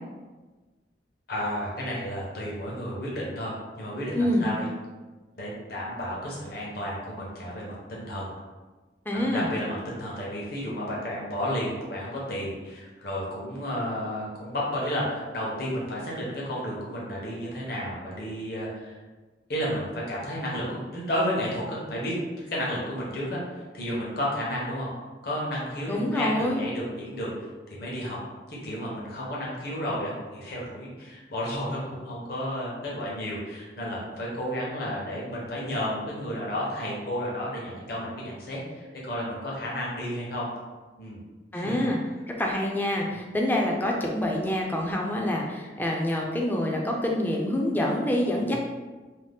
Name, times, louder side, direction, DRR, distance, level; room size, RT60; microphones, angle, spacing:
voice 1, 1.3-4.7 5.4-8.3 9.1-19.0 19.5-23.4 23.7-24.9 25.2-27.3 27.7-28.2 28.5-40.5 41.0-41.2 41.5-41.9 43.1-43.3 48.4-48.6, equal, 60° left, -4 dB, 0.8 m, -32 dB
voice 2, 4.1-4.5 9.1-9.5 25.9-26.6 41.5-42.0 42.4-48.6, left 1 dB, 10° left, 0 dB, 0.3 m, -26 dB
2.7 x 2.1 x 3.4 m, 1.3 s
head